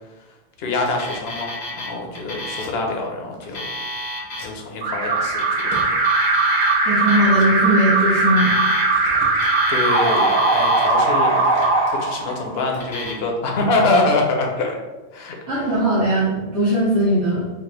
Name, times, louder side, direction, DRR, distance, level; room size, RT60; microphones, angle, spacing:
voice 1, 0.6-3.7 4.4-5.6 9.7-11.5 12.0-14.8 15.1-15.4, left 2 dB, 55° left, 1 dB, 0.8 m, -24 dB
Alarm, 0.9-1.9 2.1-2.7 3.4-4.5 5.3-6.7 7.1-7.4 8.2-9.1 9.3-10.9 11.4-11.9 12.7-13.1, left 1 dB, 80° left, 1.4 m, -31 dB
Alarm 2, 4.8-12.7, right 3 dB, 80° right, 1.2 m, -19 dB
voice 2, 6.8-8.5 15.5-17.5, right 1 dB, 60° right, -10 dB, 1.6 m, -19 dB
4.6 x 2.1 x 3.2 m, 1.2 s
omnidirectional pair, 1.4 m